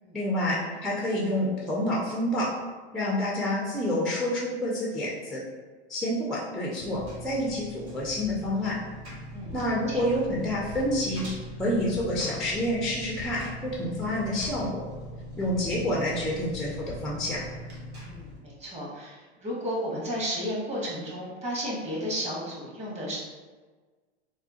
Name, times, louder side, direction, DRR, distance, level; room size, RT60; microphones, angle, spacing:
voice 1, 0.1-0.6 0.8-2.5 2.9-5.4 5.9-8.8 9.5-11.3 11.6-14.8 15.4-17.4, left 1 dB, ahead, -5 dB, 0.4 m, -28 dB
Engine, 6.8-18.4, left 1 dB, 85° right, 1.1 m, -41 dB
voice 2, 18.0-23.2, equal, 20° right, -5 dB, 1.1 m, -33 dB
3.4 x 2.0 x 2.7 m, 1.4 s
hypercardioid pair, 105°, 33 cm